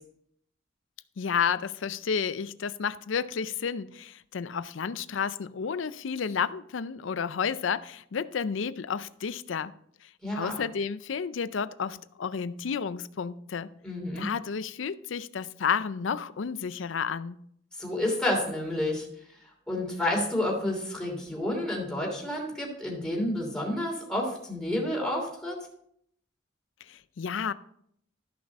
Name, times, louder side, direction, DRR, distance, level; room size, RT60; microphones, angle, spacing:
voice 1, 1.2-9.7 10.0-13.7 14.2-17.4 26.9-27.5, left 6 dB, 75° left, 0.5 m, -31 dB
voice 2, 10.2-10.6 13.8-14.3 17.8-19.0 19.7-25.6, left 1 dB, 5° left, 3.0 m, -30 dB
13.5 x 6.0 x 4.2 m
head